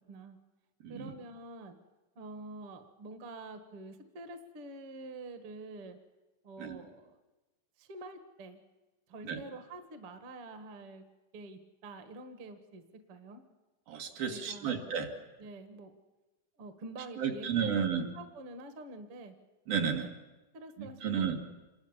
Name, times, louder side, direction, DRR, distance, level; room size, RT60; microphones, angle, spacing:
voice 1, 0.9-1.8 2.2-6.0 6.4-7.2 7.8-8.6 9.1-11.0 11.3-12.8 13.1-13.4 14.3-14.8 15.4-16.0 16.6-17.7 18.0-19.3 20.5-21.4, right 2 dB, 50° right, 8 dB, 2.0 m, -47 dB
voice 2, 13.9-15.1 17.2-18.1 19.7-20.1 20.8-21.4, right 7 dB, 70° right, 3 dB, 3.7 m, -32 dB
27.0 x 21.5 x 7.4 m, 1.1 s
omnidirectional pair, 4.3 m